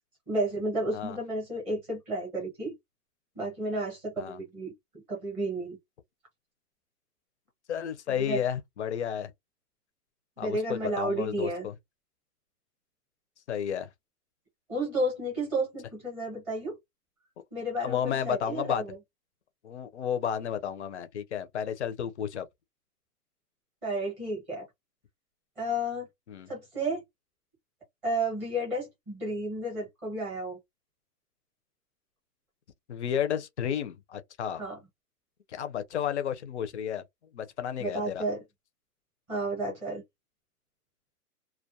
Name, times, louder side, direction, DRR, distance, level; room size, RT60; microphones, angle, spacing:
voice 1, 0.3-2.7 3.4-5.8 8.1-8.4 10.4-11.7 14.7-16.8 17.5-18.9 23.8-24.6 25.6-26.1 26.5-27.0 28.0-30.6 34.6-34.8 37.8-38.4 39.3-40.0, right 1 dB, 10° right, 0.7 m, -32 dB
voice 2, 7.7-9.3 10.4-11.7 13.5-13.9 17.8-18.8 19.6-22.5 26.3-26.5 32.9-34.6 35.5-37.0 37.3-38.2, left 8 dB, 50° left, 0.5 m, -32 dB
2.3 x 2.2 x 2.6 m
hypercardioid pair, 165°, 47 cm